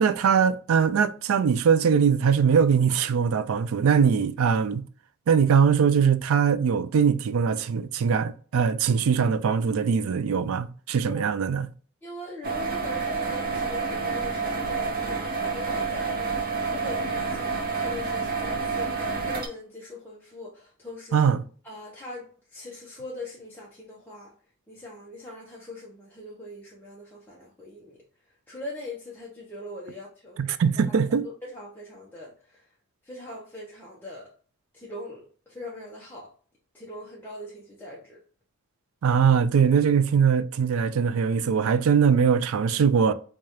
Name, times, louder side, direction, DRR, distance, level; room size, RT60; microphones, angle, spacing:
voice 1, 0.0-4.8 5.3-11.7 21.1-21.4 30.4-31.3 39.0-43.1, right 6 dB, 65° right, 0.3 m, -21 dB
voice 2, 12.0-21.3 21.6-24.3 24.7-28.0 28.5-30.4 30.9-31.0 31.2-32.7 33.0-34.3 34.7-36.3 36.7-38.2, left 2 dB, 10° left, 0.7 m, -41 dB
sound 1, 12.4-19.5, right 4 dB, 40° right, 0.8 m, -29 dB
4.8 x 2.4 x 2.8 m
head